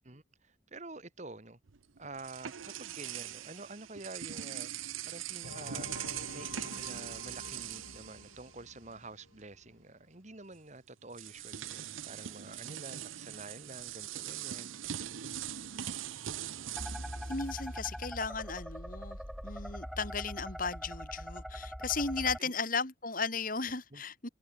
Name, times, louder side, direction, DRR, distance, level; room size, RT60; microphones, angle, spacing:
voice 1, 0.0-1.6 2.0-4.7 5.0-5.9 6.3-14.7 22.4-22.5 23.9-24.0, right 2 dB, 35° right, 1.8 m, -48 dB
sound 1, 1.7-8.9 9.2-9.4 10.5-10.6 11.1-18.3, right 10 dB, 85° right, 0.8 m, -42 dB
sound 2, 5.4-9.8, left 2 dB, 90° left, 4.0 m, -49 dB
sound 3, 16.8-22.4, equal, ahead, 1.2 m, -42 dB
voice 2, 17.3-24.3, left 4 dB, 45° left, 2.7 m, -35 dB
head